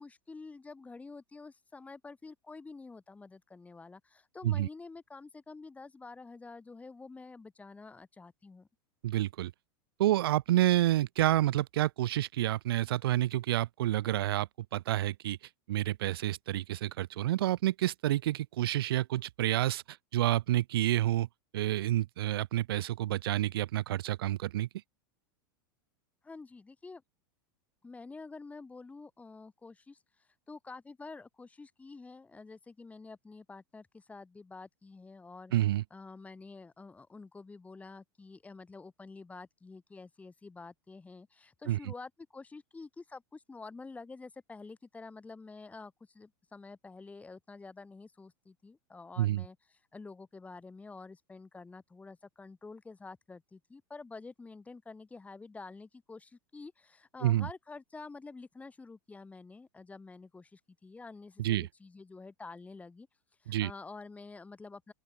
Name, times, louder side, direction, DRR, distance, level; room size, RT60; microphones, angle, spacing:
voice 1, 0.0-8.7 26.2-27.0 27.8-30.0 30.5-35.5 35.9-63.1 63.4-64.9, left 3 dB, 10° left, 2.0 m, -48 dB
voice 2, 9.0-9.5 10.0-15.4 15.7-21.3 21.5-24.7 35.5-35.8 41.7-41.9 49.2-49.4 57.2-57.5 61.4-61.7 63.5-63.7, right 14 dB, 85° right, 0.4 m, -29 dB
open air
hypercardioid pair, 120°, 12 cm